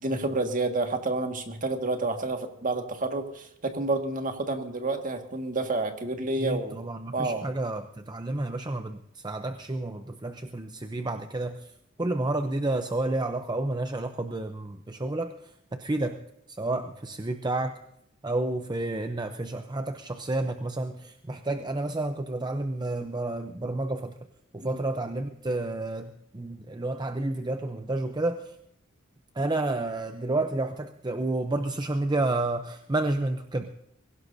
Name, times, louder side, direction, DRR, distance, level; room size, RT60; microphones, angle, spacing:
voice 1, 0.0-6.8 7.1-7.5 24.6-24.8, right 2 dB, 40° right, 5 dB, 1.8 m, -29 dB
voice 2, 6.4-11.7 12.0-16.2 16.5-17.8 18.2-24.2 24.5-28.6 29.3-33.7, right 2 dB, 20° right, 7 dB, 0.6 m, -30 dB
22.5 x 16.5 x 2.7 m, 0.78 s
head